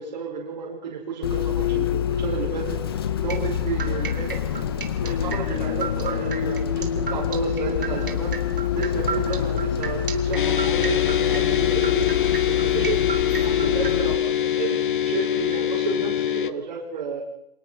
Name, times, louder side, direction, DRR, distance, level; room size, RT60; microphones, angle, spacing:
voice 1, 0.0-4.6 5.0-8.4 8.7-17.2, right 5 dB, 45° right, -3 dB, 5.4 m, -32 dB
Bus, 1.2-14.2, left 9 dB, 25° left, 0.9 m, -26 dB
sound 1, 3.3-13.9, right 6 dB, 60° right, 3.1 m, -33 dB
sound 2, 10.4-16.5, left 10 dB, 55° left, 1.1 m, -24 dB
26.5 x 19.0 x 5.9 m, 0.81 s
hypercardioid pair, 175°, 31 cm